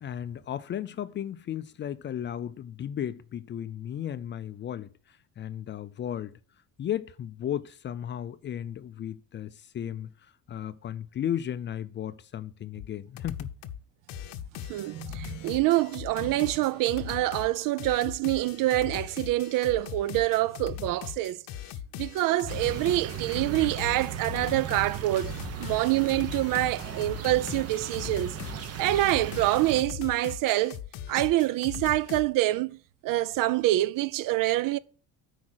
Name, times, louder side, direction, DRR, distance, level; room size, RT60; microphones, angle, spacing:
voice 1, 0.0-6.4 6.8-13.5 25.6-25.7, left 10 dB, 35° left, 0.4 m, -35 dB
sound 1, 12.8-12.9 13.2-13.8 14.1-32.3, left 10 dB, 70° left, 0.7 m, -40 dB
voice 2, 14.7-21.4 22.0-28.4 28.8-30.8 31.1-34.8, right 16 dB, 65° right, 0.5 m, -26 dB
sound 2, 22.5-29.8, right 7 dB, 40° right, 1.0 m, -37 dB
8.4 x 4.9 x 6.1 m
cardioid pair, 150°, 36 cm